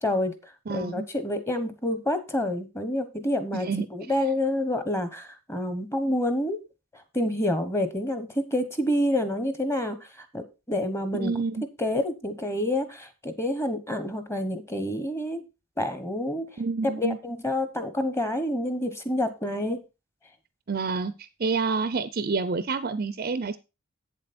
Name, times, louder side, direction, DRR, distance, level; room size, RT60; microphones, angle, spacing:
voice 1, 0.0-0.3 0.7-6.6 7.1-11.3 11.8-15.4 15.8-16.5 16.8-19.8, left 1 dB, 10° left, 10 dB, 1.1 m, -28 dB
voice 2, 0.7-1.1 3.5-3.9 11.1-11.6 16.6-17.2 20.7-21.1 21.4-23.6, right 4 dB, 45° right, 13 dB, 0.5 m, -28 dB
8.3 x 7.5 x 4.3 m, 0.27 s
head